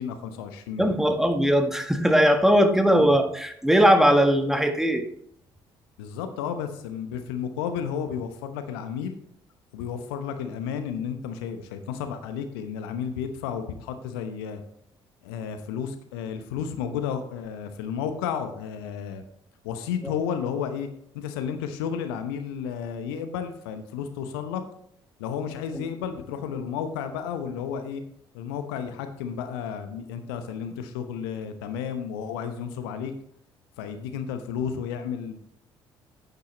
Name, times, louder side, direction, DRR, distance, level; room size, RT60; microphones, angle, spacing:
voice 1, 0.0-0.9 3.0-3.1 6.0-9.1 9.7-14.6 15.2-19.2 19.6-20.9 21.1-24.6 25.2-28.0 28.3-33.1 33.8-35.4, left 7 dB, 70° left, 8 dB, 0.9 m, -32 dB
voice 2, 0.8-5.0, equal, 5° right, 6 dB, 1.5 m, -20 dB
11.0 x 9.5 x 3.1 m, 0.69 s
figure-of-eight pair, 50°, 13 cm